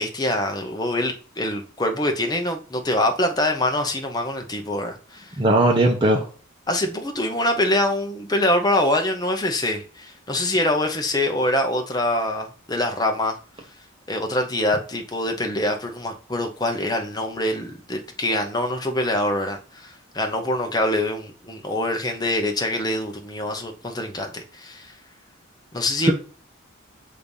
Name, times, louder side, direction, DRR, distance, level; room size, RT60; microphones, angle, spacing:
voice 1, 0.0-5.4 6.7-13.4 14.1-24.9 25.7-26.1, left 1 dB, 20° left, 0.8 m, -24 dB
voice 2, 5.4-6.3 26.1-26.2, right 1 dB, 25° right, 0.8 m, -18 dB
6.5 x 2.7 x 5.3 m
head